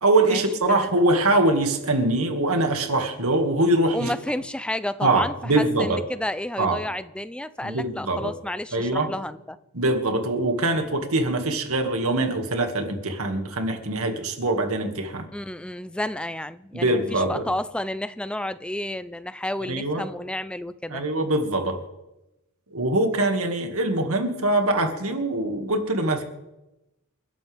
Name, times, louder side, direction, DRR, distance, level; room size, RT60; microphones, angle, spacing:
voice 1, 0.0-4.1 5.0-6.0 6.6-6.8 7.6-8.3 8.7-9.1 9.7-15.3 16.7-17.4 19.7-20.1 20.9-21.8 22.7-26.2, right 2 dB, 75° right, 5 dB, 2.2 m, -23 dB
voice 2, 3.9-9.6 15.3-21.0, left 1 dB, 5° left, 14 dB, 0.4 m, -31 dB
29.0 x 12.0 x 3.6 m, 0.95 s
head